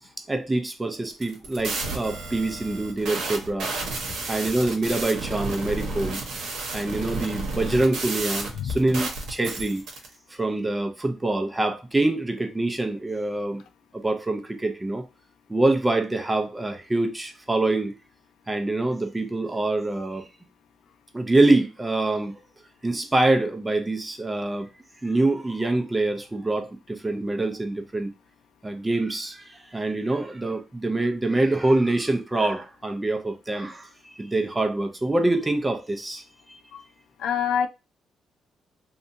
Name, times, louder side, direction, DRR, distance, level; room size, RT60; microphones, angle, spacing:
voice 1, 0.3-3.7 4.3-6.2 6.7-9.8 10.3-13.6 13.9-15.1 15.5-17.9 18.5-20.3 21.1-22.3 22.8-24.7 25.0-28.1 28.6-36.2 36.5-36.6, right 2 dB, 15° right, 0.5 m, -25 dB
sound 1, 1.1-10.1, right 3 dB, 75° right, 0.9 m, -32 dB
voice 2, 37.2-37.7, left 8 dB, 75° left, 0.3 m, -25 dB
2.7 x 2.2 x 2.6 m
cardioid pair, 90°, 0 cm